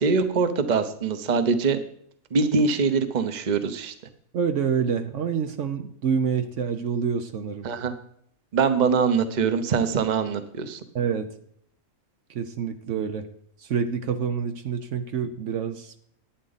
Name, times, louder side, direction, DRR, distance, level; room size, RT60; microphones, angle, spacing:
voice 1, 0.0-1.8 2.3-3.9 7.6-7.9 8.5-10.8, right 5 dB, 40° right, 10 dB, 0.9 m, -23 dB
voice 2, 4.3-7.7 10.9-11.3 12.3-13.3 13.6-15.9, right 6 dB, 70° right, 8 dB, 1.1 m, -27 dB
11.5 x 8.9 x 4.0 m, 0.65 s
omnidirectional pair, 1.4 m